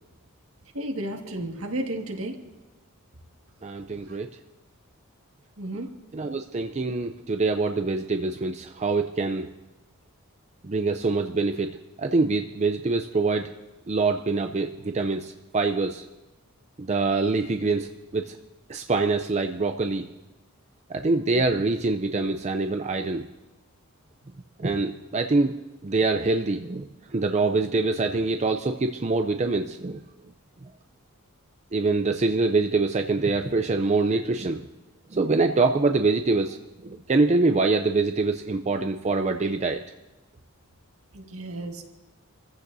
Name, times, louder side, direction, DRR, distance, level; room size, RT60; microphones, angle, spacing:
voice 1, 0.7-2.3 4.1-4.2 5.6-5.9 41.1-41.8, right 1 dB, 65° right, 1 dB, 1.9 m, -32 dB
voice 2, 3.6-4.3 6.1-9.5 10.6-13.5 13.9-16.0 16.8-18.3 18.7-20.0 20.9-23.2 24.6-25.6 25.8-26.9 27.1-30.0 31.7-34.7 35.1-36.6 36.8-39.8, right 3 dB, 30° right, 6 dB, 0.5 m, -25 dB
28.0 x 15.0 x 2.7 m, 1.0 s
head